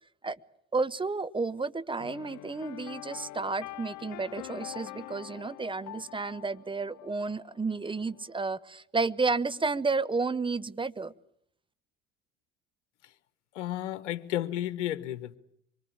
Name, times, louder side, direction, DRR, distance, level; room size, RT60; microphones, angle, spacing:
voice 1, 0.7-11.1, right 4 dB, 15° right, 17 dB, 1.1 m, -31 dB
sound 1, 2.0-8.3, left 16 dB, 55° left, 1.1 m, -45 dB
voice 2, 13.5-15.4, left 12 dB, 75° left, 14 dB, 1.2 m, -33 dB
25.5 x 23.5 x 8.7 m, 0.72 s
hypercardioid pair, 70°, 35 cm